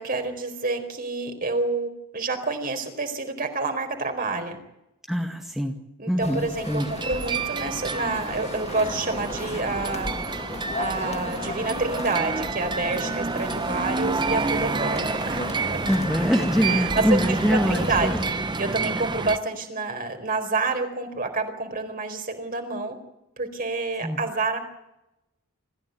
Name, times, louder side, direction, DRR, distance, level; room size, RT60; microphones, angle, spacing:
voice 1, 0.0-4.6 6.0-10.1 10.8-15.8 16.6-18.1 18.6-23.0 23.4-24.6, right 3 dB, 40° right, 6 dB, 4.4 m, -28 dB
voice 2, 5.1-5.8 6.1-6.9 15.9-18.2 24.0-24.2, equal, ahead, 1 dB, 2.1 m, -24 dB
sound 1, 6.2-18.3, left 2 dB, 30° left, 1.5 m, -36 dB
sound 2, 6.6-19.4, right 4 dB, 20° right, 0.8 m, -29 dB
26.5 x 15.0 x 9.6 m, 0.92 s
head